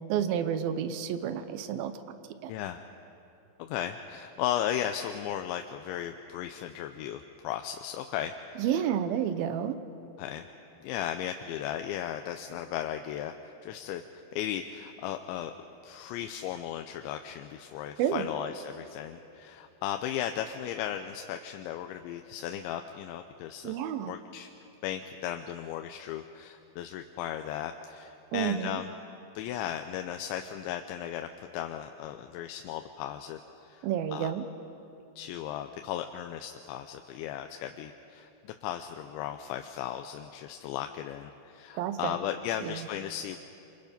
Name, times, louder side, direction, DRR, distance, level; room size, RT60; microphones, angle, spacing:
voice 1, 0.1-1.9 2.4-2.5 8.6-9.8 18.0-18.3 23.6-24.1 28.3-28.8 33.8-34.4 41.7-42.1 42.6-42.9, right 9 dB, 75° right, 11 dB, 2.2 m, -30 dB
voice 2, 2.5-2.8 3.6-8.8 10.2-10.4 10.8-14.0 14.3-15.5 15.8-23.7 24.1-24.5 24.8-28.9 29.4-34.3 35.2-43.4, left 10 dB, 90° left, 6 dB, 3.0 m, -36 dB
26.5 x 26.5 x 5.3 m, 2.9 s
omnidirectional pair, 5.1 m